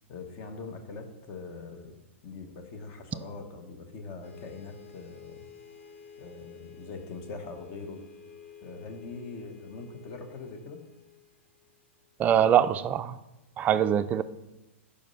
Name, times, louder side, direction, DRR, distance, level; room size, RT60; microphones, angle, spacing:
voice 1, 0.1-5.5 6.2-8.0 8.6-10.8, left 3 dB, 40° left, 1.1 m, -42 dB
sound 1, 4.2-12.0, left 6 dB, 60° left, 1.4 m, -51 dB
voice 2, 12.2-13.2 13.6-14.2, right 9 dB, 25° right, 0.3 m, -23 dB
5.1 x 5.0 x 5.5 m
figure-of-eight pair, 110°, 7 cm